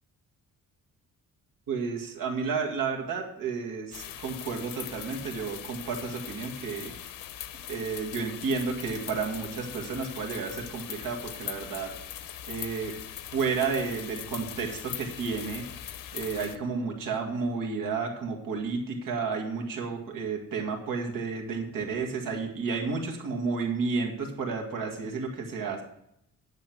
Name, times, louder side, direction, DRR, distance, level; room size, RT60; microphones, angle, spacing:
voice 1, 1.7-6.9 7.7-11.9 12.5-12.9 13.3-15.6 16.1-25.8, right 5 dB, 80° right, 1 dB, 2.1 m, -31 dB
sound 1, 3.9-16.6, left 11 dB, 85° left, 0.8 m, -41 dB
10.0 x 6.4 x 6.0 m, 0.77 s
wide cardioid pair, 165°, 33 cm